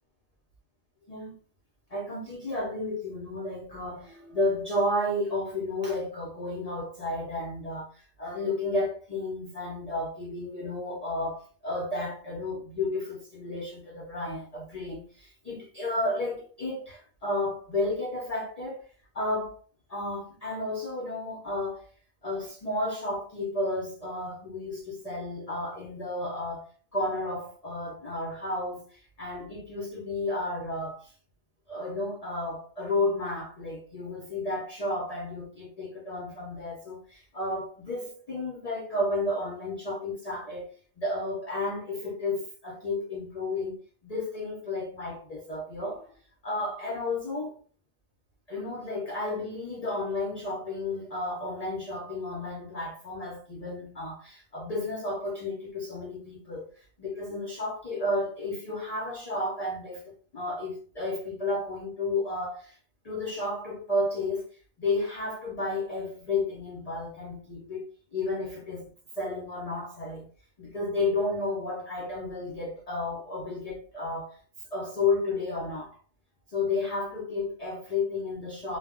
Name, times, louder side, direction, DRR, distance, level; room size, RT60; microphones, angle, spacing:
voice 1, 1.9-18.9 19.1-19.6 19.9-21.9 22.2-31.1 31.7-46.1 46.4-47.6 48.5-62.8 63.0-67.9 68.1-68.9 69.2-70.3 70.6-74.4 74.7-76.0 76.5-78.8, left 2 dB, 60° left, 0.4 m, -32 dB
2.2 x 2.0 x 3.5 m
omnidirectional pair, 1.4 m